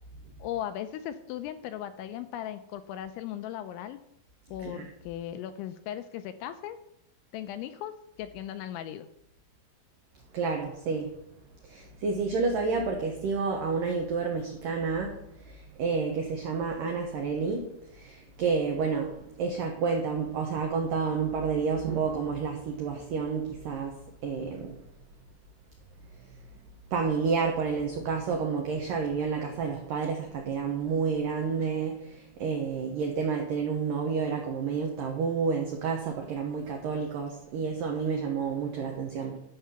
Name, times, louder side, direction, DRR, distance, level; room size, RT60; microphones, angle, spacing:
voice 1, 0.4-4.0 4.5-6.8 7.3-7.9 8.2-9.1, left 11 dB, 85° left, 10 dB, 2.8 m, -37 dB
voice 2, 10.3-11.1 11.7-15.2 15.5-19.1 19.4-24.8 26.9-39.4, right 5 dB, 90° right, 2 dB, 1.9 m, -30 dB
12.0 x 5.8 x 6.9 m, 0.79 s
omnidirectional pair, 5.7 m